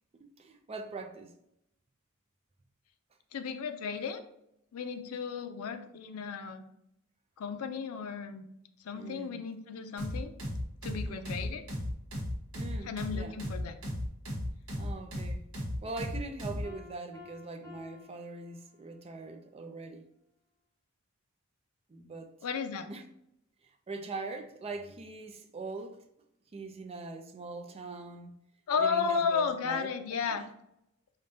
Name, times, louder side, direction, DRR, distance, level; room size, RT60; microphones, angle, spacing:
voice 1, 0.1-1.3 8.9-9.4 10.9-11.3 12.5-13.4 14.8-15.4 15.8-20.1 21.9-22.3 22.9-23.0 23.9-26.0 26.5-28.3 28.8-30.5, right 3 dB, 30° right, 0.4 m, -42 dB
voice 2, 3.3-4.2 4.7-6.6 7.4-8.4 8.8-10.3 10.8-11.6 12.9-13.7 22.4-22.9 28.7-30.4, left 6 dB, 85° left, 0.4 m, -33 dB
sound 1, 10.0-16.7, equal, 80° right, 1.1 m, -35 dB
Piano, 16.6-19.2, left 5 dB, 20° left, 1.3 m, -54 dB
5.0 x 2.1 x 2.6 m
head